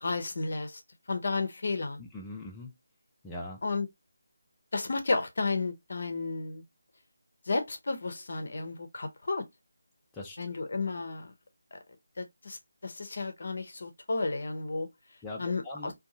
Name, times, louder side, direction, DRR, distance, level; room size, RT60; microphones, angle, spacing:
voice 1, 0.0-0.8 1.1-2.0 3.6-3.9 4.7-6.6 7.5-9.4 10.4-11.3 11.7-11.8 12.2-14.9 15.4-15.9, left 3 dB, 50° left, 0.6 m, -32 dB
voice 2, 2.0-2.7 3.2-3.6 10.1-10.6 15.2-15.9, left 2 dB, 10° left, 0.4 m, -41 dB
2.6 x 2.2 x 2.6 m
figure-of-eight pair, 155°, 0 cm